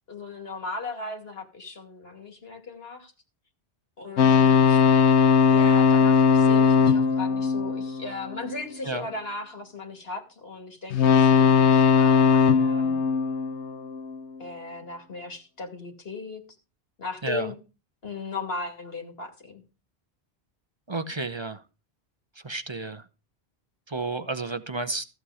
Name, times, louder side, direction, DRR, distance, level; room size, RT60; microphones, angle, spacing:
voice 1, 0.1-3.1 4.0-4.8 5.5-13.0 14.4-16.4 17.0-17.5 18.0-19.6, left 3 dB, 65° left, 4 dB, 2.7 m, -37 dB
sound 1, 4.2-8.6 10.9-14.2, left 6 dB, 85° left, 1.0 m, -19 dB
voice 2, 20.9-21.6 22.4-23.1 23.9-25.0, right 2 dB, 30° right, 12 dB, 0.8 m, -31 dB
14.5 x 7.8 x 4.9 m, 0.32 s
omnidirectional pair, 1.1 m